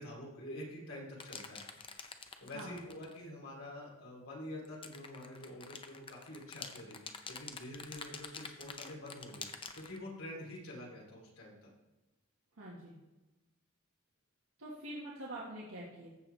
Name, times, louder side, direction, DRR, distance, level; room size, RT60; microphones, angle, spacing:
voice 1, 0.0-1.7 2.4-11.7, left 1 dB, 75° left, -3 dB, 3.2 m, -47 dB
sound 1, 1.2-3.2 4.6-10.0, left 5 dB, 25° left, 0.6 m, -47 dB
voice 2, 2.5-2.9 12.6-13.0 14.6-16.1, right 1 dB, 80° right, -6 dB, 1.7 m, -45 dB
14.5 x 6.9 x 3.4 m, 1.1 s
head